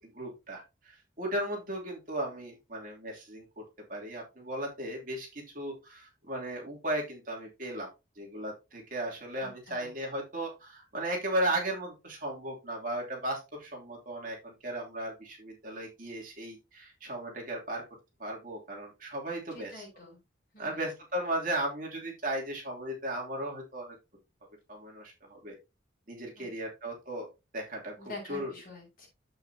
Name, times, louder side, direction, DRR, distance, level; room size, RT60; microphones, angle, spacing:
voice 1, 0.0-3.4 3.9-7.9 8.2-17.8 18.2-19.8 20.6-23.9 24.7-25.5 26.1-27.3 27.5-28.5, right 1 dB, 45° right, -1 dB, 2.9 m, -36 dB
voice 2, 9.4-9.9 19.5-20.2 20.5-20.8 26.4-26.5 28.0-29.1, left 2 dB, 45° left, -2 dB, 5.3 m, -46 dB
8.6 x 7.7 x 2.8 m, 0.25 s
head